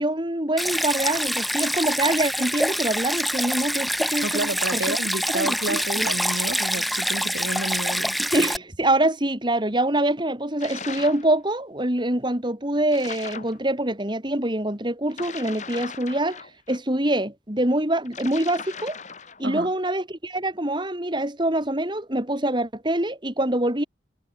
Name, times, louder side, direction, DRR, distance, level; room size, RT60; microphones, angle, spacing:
voice 1, 0.0-5.0 5.3-6.1 8.2-16.4 16.7-19.0 19.4-23.8, right 1 dB, 25° right, 3.6 m, -25 dB
Stream, 0.6-8.6, equal, ahead, 1.5 m, -26 dB
voice 2, 4.2-8.2 19.4-19.7, right 2 dB, 70° right, 4.5 m, -30 dB
sound 1, 10.6-11.3 12.9-13.6 15.1-16.8 18.1-19.4, left 6 dB, 45° left, 3.3 m, -38 dB
head